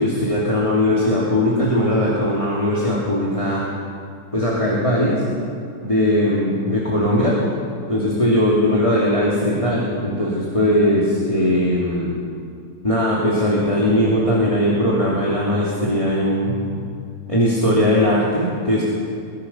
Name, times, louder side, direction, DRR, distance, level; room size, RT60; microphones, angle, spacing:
voice 1, 0.0-3.6 4.3-5.2 5.8-7.4 7.9-12.1 12.8-16.8 17.3-18.8, left 1 dB, 20° left, -6 dB, 3.1 m, -19 dB
23.0 x 22.5 x 5.9 m, 2.4 s
omnidirectional pair, 1.8 m